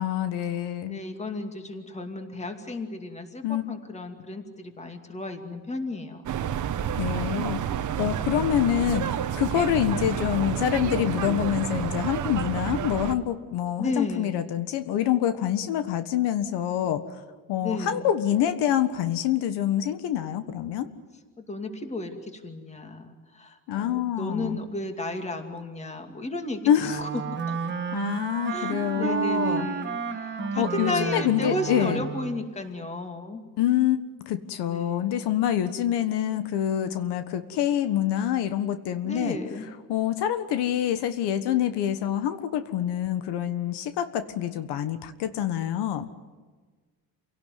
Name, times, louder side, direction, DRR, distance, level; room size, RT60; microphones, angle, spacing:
voice 1, 0.0-1.0 3.4-3.6 7.0-7.6 8.0-17.0 17.5-20.9 23.7-24.6 26.7-27.0 27.9-29.7 30.4-32.0 33.6-34.0 34.3-39.4 39.9-46.1, left 11 dB, 80° left, 10 dB, 1.6 m, -26 dB
voice 2, 0.9-6.2 13.8-14.5 17.6-18.1 21.4-27.1 27.5-27.6 28.5-33.4 34.7-35.1 39.0-39.7, left 2 dB, 15° left, 5 dB, 2.5 m, -34 dB
sound 1, 6.3-13.2, right 9 dB, 45° right, 1.3 m, -29 dB
Wind instrument woodwind instrument, 26.8-32.5, right 6 dB, 25° right, 1.7 m, -31 dB
28.0 x 18.0 x 9.5 m, 1.4 s
cardioid pair, 160°, 41 cm